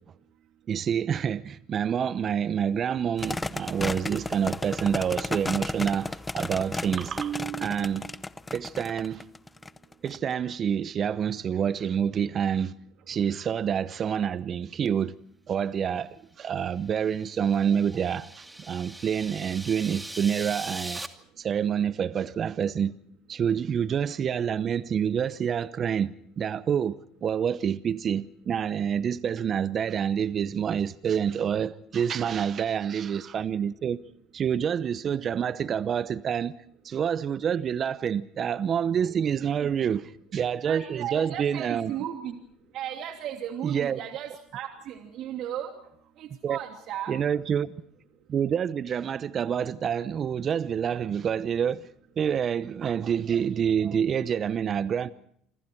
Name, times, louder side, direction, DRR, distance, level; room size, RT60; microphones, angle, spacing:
voice 1, 0.7-8.2 8.5-9.3 10.0-12.7 13.1-15.1 15.5-21.0 21.4-22.9 23.3-34.0 34.3-36.5 36.8-41.9 43.6-44.0 46.4-46.6 47.1-47.8 48.3-51.9 52.2-55.1, right 8 dB, 45° right, 0.8 m, -27 dB
sound 1, 3.2-10.2, left 2 dB, 15° left, 0.8 m, -33 dB
sound 2, 16.9-21.1, right 1 dB, 10° right, 2.5 m, -41 dB
voice 2, 40.6-42.4 42.7-45.7 46.2-47.2, right 10 dB, 60° right, 2.8 m, -35 dB
28.0 x 25.0 x 4.6 m
supercardioid pair, 85°, 0 cm